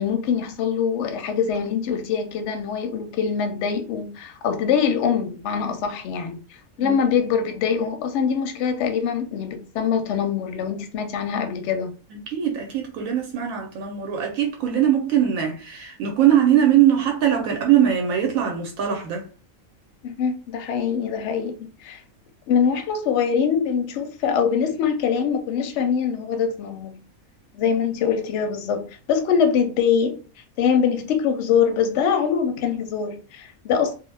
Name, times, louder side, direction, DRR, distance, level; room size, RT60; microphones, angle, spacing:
voice 1, 0.0-6.4 6.8-11.9 20.0-22.0 22.5-27.0 27.5-30.2 30.6-33.9, left 7 dB, 65° left, 0.8 m, -23 dB
voice 2, 12.1-19.3, right 10 dB, 80° right, 1.0 m, -21 dB
2.4 x 2.1 x 3.1 m
omnidirectional pair, 1.5 m